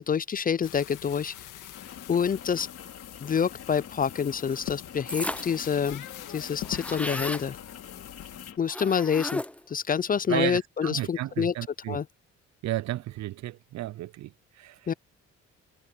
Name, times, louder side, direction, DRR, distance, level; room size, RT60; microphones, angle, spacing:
voice 1, 0.0-1.3 2.1-2.7 3.2-6.0 6.3-7.6 8.6-9.4 9.7-11.5 11.9-12.1 14.9-15.0, left 7 dB, 30° left, 0.4 m, -27 dB
sound 1, 0.6-8.5, left 13 dB, 85° left, 2.1 m, -43 dB
Rain, 1.7-8.6, left 8 dB, 55° left, 3.5 m, -46 dB
sound 2, 5.1-5.7 6.0-6.1 6.3-7.5 8.7-9.7, left 1 dB, 5° left, 1.0 m, -34 dB
voice 2, 10.3-12.0 12.6-14.3 14.6-14.8, right 15 dB, 65° right, 0.5 m, -32 dB
cardioid pair, 90°, 30 cm